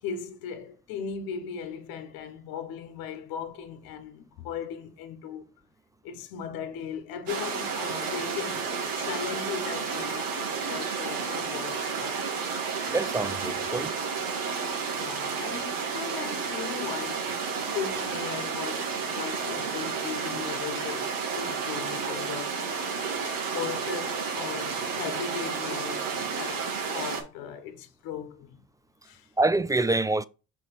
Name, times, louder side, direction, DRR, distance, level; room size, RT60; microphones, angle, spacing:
voice 1, 0.0-5.4 6.0-12.3 14.9-22.6 23.5-28.6 29.0-29.3, left 7 dB, 80° left, 1.1 m, -38 dB
sound 1, 7.3-27.2, right 5 dB, 85° right, 1.8 m, -31 dB
voice 2, 12.9-13.9 29.4-30.2, right 2 dB, 10° right, 0.4 m, -25 dB
6.0 x 4.2 x 4.2 m
supercardioid pair, 65°, 35 cm